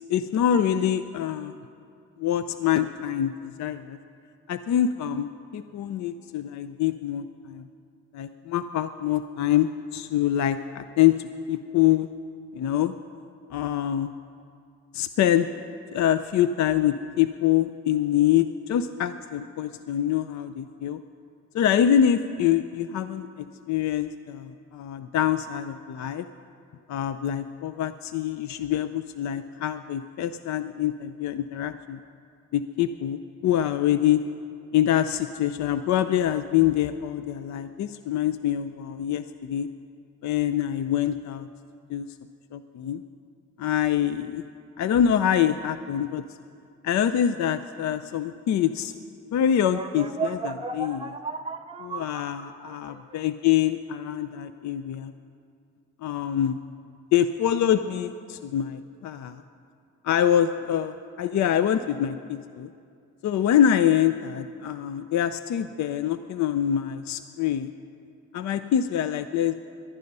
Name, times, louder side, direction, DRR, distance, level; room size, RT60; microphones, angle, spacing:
voice 1, 0.1-1.5 2.2-4.0 4.5-5.3 5.5-7.7 8.1-12.1 12.5-12.9 13.5-14.1 14.9-15.5 15.9-21.0 21.5-26.3 26.9-32.0 32.5-34.2 34.7-39.7 40.2-41.5 41.9-42.1 42.5-43.0 43.6-44.4 44.8-46.2 46.8-48.9 49.3-51.2 51.8-55.1 56.0-56.6 57.1-59.4 60.0-62.7 63.2-67.7 68.3-69.5, left 10 dB, 65° left, 11 dB, 0.6 m, -25 dB
sound 1, 49.6-53.1, right 4 dB, 20° right, 0.9 m, -34 dB
18.0 x 12.0 x 5.4 m, 2.4 s
cardioid pair, 90°, 30 cm